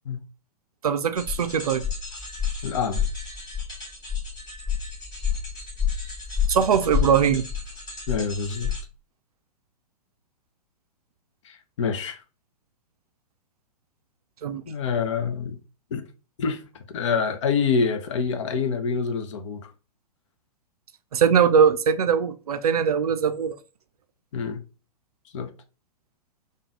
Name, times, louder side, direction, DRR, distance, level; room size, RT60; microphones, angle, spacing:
voice 1, 0.8-1.8 6.5-7.5 14.4-14.6 21.1-23.6, right 7 dB, 65° right, 0.4 m, -21 dB
sound 1, 1.2-8.8, left 7 dB, 20° left, 1.6 m, -29 dB
voice 2, 2.6-3.0 8.1-8.7 11.4-12.2 14.7-15.6 15.9-16.0 16.4-16.6 16.9-19.7 24.3-24.6 25.3-25.5, left 5 dB, 50° left, 0.5 m, -26 dB
3.5 x 2.2 x 2.8 m
figure-of-eight pair, 110°, 21 cm